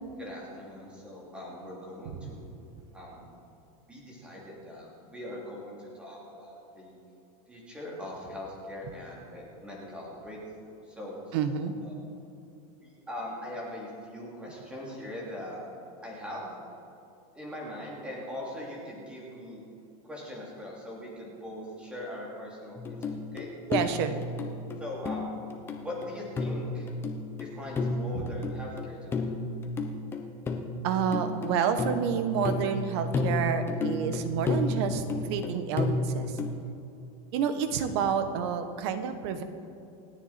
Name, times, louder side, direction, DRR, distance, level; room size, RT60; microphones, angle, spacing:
voice 1, 0.2-2.6 2.9-3.3 3.9-7.0 7.5-10.4 10.6-11.4 11.8-12.0 12.8-15.7 16.0-16.5 17.3-19.6 20.0-23.5 24.8-25.3 25.8-26.9 27.4-29.3, left 1 dB, 5° right, -4 dB, 2.8 m, -41 dB
voice 2, 11.3-11.7 23.7-24.2 30.8-36.4 37.3-39.4, right 7 dB, 45° right, 9 dB, 1.2 m, -29 dB
sound 1, 22.8-36.5, left 2 dB, 10° left, 0.8 m, -32 dB
28.0 x 9.7 x 4.3 m, 2.8 s
supercardioid pair, 180°, 19 cm